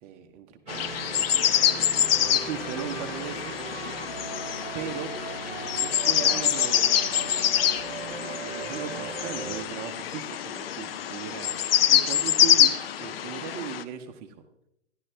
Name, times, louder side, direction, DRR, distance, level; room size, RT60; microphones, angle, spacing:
voice 1, 0.0-1.0 2.0-3.6 4.7-5.1 5.4-7.3 8.1-14.4, right 9 dB, 25° right, 6 dB, 0.9 m, -38 dB
sound 1, 0.7-13.8, left 10 dB, 50° left, 0.6 m, -25 dB
sound 2, 0.7-9.6, right 6 dB, 90° right, 0.9 m, -39 dB
12.0 x 11.5 x 3.4 m, 0.82 s
hypercardioid pair, 125°, 36 cm